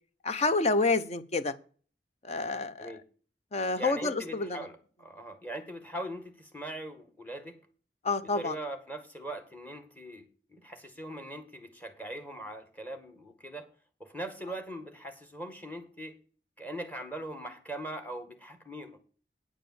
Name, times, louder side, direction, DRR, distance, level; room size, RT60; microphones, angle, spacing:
voice 1, 0.2-1.5 2.2-2.9 3.5-4.7 8.0-8.6, left 3 dB, 40° left, 12 dB, 0.8 m, -28 dB
voice 2, 3.7-7.6 8.2-13.7 14.0-16.1 16.6-19.0, right 1 dB, 10° left, 7 dB, 1.8 m, -41 dB
9.5 x 5.0 x 8.0 m, 0.40 s
head